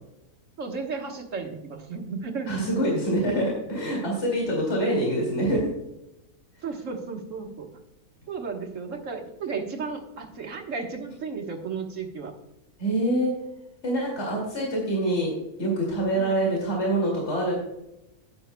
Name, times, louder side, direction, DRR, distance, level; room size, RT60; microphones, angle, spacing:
voice 1, 0.6-2.6 6.6-7.7 8.3-12.4 16.1-16.4, right 4 dB, 60° right, 3 dB, 1.6 m, -34 dB
voice 2, 2.5-5.7 12.8-13.3 13.8-15.3 15.6-17.5, right 1 dB, 50° left, -2 dB, 2.7 m, -25 dB
12.0 x 9.5 x 2.2 m, 0.89 s
omnidirectional pair, 1.5 m